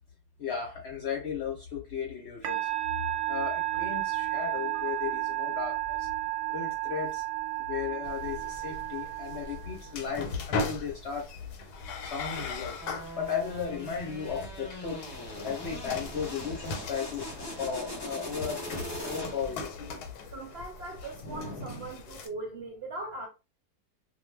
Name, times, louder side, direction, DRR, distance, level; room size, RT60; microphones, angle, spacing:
voice 1, 0.4-2.7 3.3-6.1 6.5-7.2 7.6-11.3 12.0-12.8 13.2-15.0 15.4-18.6 19.0-19.7, left 7 dB, 60° left, 0.7 m, -35 dB
Musical instrument, 2.4-10.1, right 15 dB, 85° right, 1.1 m, -32 dB
sound 1, 8.0-22.3, left 3 dB, 85° left, 1.1 m, -39 dB
sound 2, 12.8-19.7, left 1 dB, 25° left, 0.6 m, -41 dB
voice 2, 20.0-23.3, right 2 dB, 60° right, 0.6 m, -40 dB
2.4 x 2.2 x 3.1 m
omnidirectional pair, 1.6 m